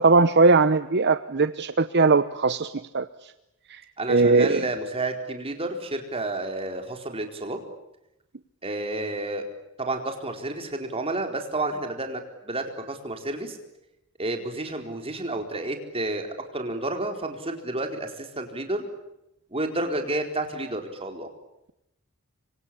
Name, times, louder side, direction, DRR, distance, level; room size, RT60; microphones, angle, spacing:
voice 1, 0.0-3.1 3.7-3.8 4.1-4.6, right 3 dB, 50° right, 12 dB, 0.9 m, -20 dB
voice 2, 4.0-7.6 8.6-9.4 9.8-13.6 14.2-18.8 19.5-21.3, right 2 dB, 25° right, 4 dB, 4.3 m, -30 dB
26.5 x 25.0 x 8.7 m, 0.88 s
head